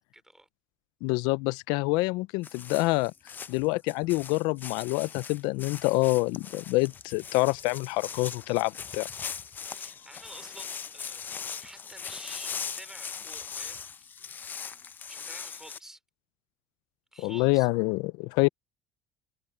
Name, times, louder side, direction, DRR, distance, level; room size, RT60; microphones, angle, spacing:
voice 1, 0.1-0.5 9.6-13.8 14.1-14.6 15.1-16.0 17.1-17.7, right 1 dB, 5° right, 3.0 m, -50 dB
voice 2, 1.0-3.1 3.5-9.1 17.2-18.5, left 23 dB, 80° left, 0.4 m, -26 dB
sound 1, 2.4-15.8, left 6 dB, 25° left, 0.6 m, -40 dB
cardioid pair, 135°, 7 cm